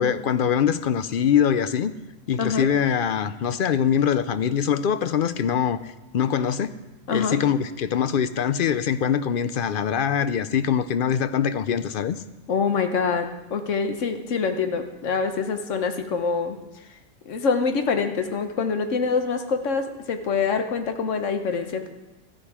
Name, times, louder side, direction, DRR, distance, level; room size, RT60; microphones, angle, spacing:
voice 1, 0.0-1.9 2.3-6.7 7.1-12.2, left 8 dB, 60° left, 13 dB, 0.6 m, -23 dB
voice 2, 12.5-16.6 17.3-21.9, left 5 dB, 75° left, 7 dB, 1.2 m, -25 dB
13.5 x 10.0 x 4.8 m, 1.1 s
omnidirectional pair, 1.3 m